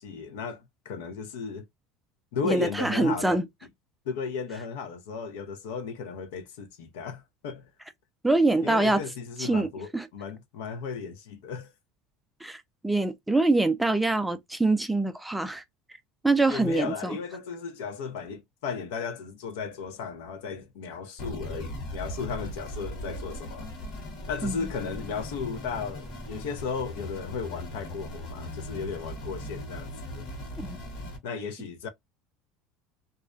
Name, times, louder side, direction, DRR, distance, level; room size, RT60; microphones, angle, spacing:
voice 1, 0.0-1.6 2.3-3.4 4.1-7.6 8.6-11.7 16.5-23.7 24.3-30.3 31.2-31.9, left 5 dB, 85° left, 0.6 m, -35 dB
voice 2, 2.4-3.5 8.2-9.0 9.4-10.1 12.4-15.6 16.2-17.2 24.4-24.6 30.6-30.8, right 2 dB, 5° right, 0.3 m, -25 dB
sound 1, 21.2-31.2, left 1 dB, 50° left, 1.2 m, -39 dB
2.4 x 2.1 x 2.5 m
supercardioid pair, 130°, 0 cm